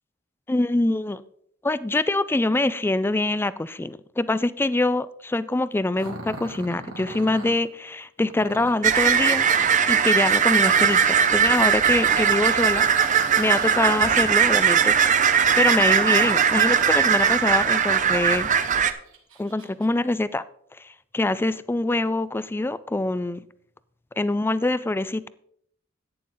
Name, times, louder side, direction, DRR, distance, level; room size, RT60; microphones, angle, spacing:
voice 1, 0.5-1.2 1.6-15.3 15.6-18.5 19.4-20.4 20.8-23.4 24.2-25.3, left 2 dB, 10° left, 16 dB, 0.3 m, -25 dB
Growling, 5.9-7.6 8.3-8.9 11.5-16.3 16.8-17.6 18.1-18.2 18.9-19.9, right 2 dB, 70° right, 1.9 m, -42 dB
sound 1, 8.8-18.9, right 7 dB, 40° right, 0.6 m, -19 dB
11.0 x 9.1 x 3.8 m, 0.70 s
head